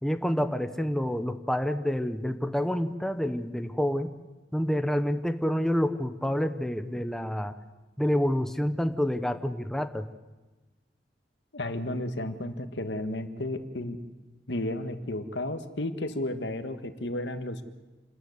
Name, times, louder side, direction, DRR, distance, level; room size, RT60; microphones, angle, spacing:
voice 1, 0.0-4.2 4.5-7.5 8.0-10.1, equal, 5° left, 8 dB, 1.0 m, -28 dB
voice 2, 11.5-14.0 14.5-17.6, left 1 dB, 85° left, 9 dB, 1.6 m, -33 dB
28.0 x 13.5 x 9.6 m, 1.2 s
head